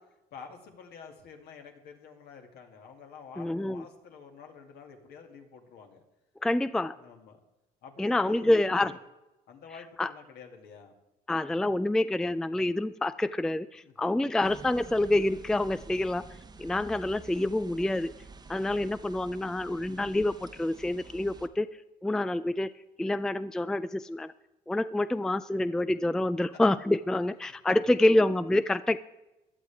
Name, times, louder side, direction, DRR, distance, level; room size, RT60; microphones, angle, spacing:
voice 1, 0.3-6.0 7.0-7.4 7.8-9.0 9.5-10.9 13.8-14.3 27.5-27.9, left 6 dB, 70° left, 3 dB, 2.4 m, -49 dB
voice 2, 3.4-3.8 6.4-7.0 8.0-8.9 10.0-10.1 11.3-16.2 16.6-18.1 18.5-21.7 22.0-22.7 23.0-24.3 24.7-29.0, left 1 dB, 5° left, 14 dB, 0.4 m, -27 dB
sound 1, 14.4-21.5, right 4 dB, 25° right, 1.0 m, -49 dB
16.0 x 11.5 x 3.5 m, 0.99 s
cardioid pair, 110°, 17 cm